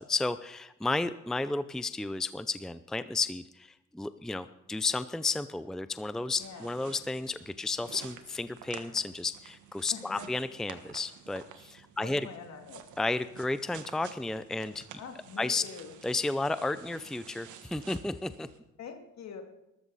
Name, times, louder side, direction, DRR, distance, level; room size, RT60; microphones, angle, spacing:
voice 1, 0.0-12.3 13.0-14.8 15.4-15.6 16.0-18.5, left 3 dB, ahead, 12 dB, 0.5 m, -32 dB
sound 1, 6.2-18.6, right 9 dB, 80° right, 1.6 m, -51 dB
voice 2, 6.4-6.7 9.9-10.3 12.0-12.8 15.0-15.9 18.8-19.4, left 6 dB, 60° left, 5 dB, 2.5 m, -44 dB
19.5 x 13.5 x 4.1 m, 0.91 s
cardioid pair, 90°, 30 cm